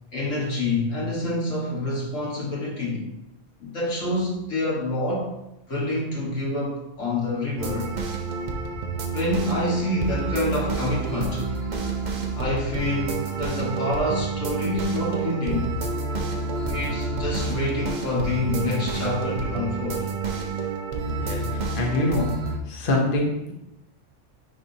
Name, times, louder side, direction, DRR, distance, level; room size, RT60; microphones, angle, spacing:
voice 1, 0.1-3.1 3.6-5.3 5.7-7.9 9.1-11.5 12.4-15.8 16.7-20.1 20.6-20.7, left 1 dB, 90° left, -4 dB, 2.0 m, -27 dB
sound 1, 7.6-22.6, right 4 dB, 45° right, 0.7 m, -29 dB
voice 2, 21.1-22.3 22.6-23.5, left 2 dB, 50° left, -1 dB, 1.1 m, -25 dB
9.5 x 3.6 x 2.8 m, 0.88 s
omnidirectional pair, 1.2 m